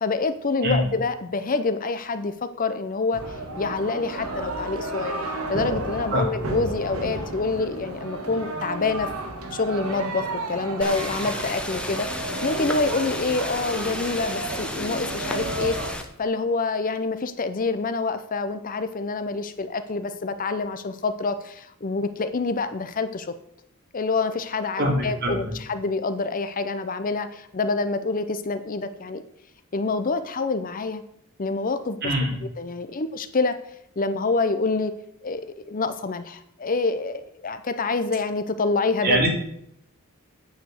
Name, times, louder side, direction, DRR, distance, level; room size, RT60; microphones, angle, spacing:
voice 1, 0.0-3.2 3.6-5.1 5.5-9.1 9.5-15.8 16.2-23.3 23.9-29.2 29.7-31.0 31.4-32.1 32.4-33.6 34.0-34.9 35.2-39.2, left 3 dB, 40° left, 11 dB, 0.6 m, -27 dB
sound 1, 3.1-15.9, right 2 dB, 85° right, 1.9 m, -32 dB
sound 2, 10.8-16.0, left 1 dB, 5° left, 0.9 m, -33 dB
voice 2, 24.8-25.5 32.0-32.3 39.0-39.3, right 1 dB, 50° right, 0 dB, 2.8 m, -23 dB
9.2 x 5.1 x 7.7 m, 0.72 s
head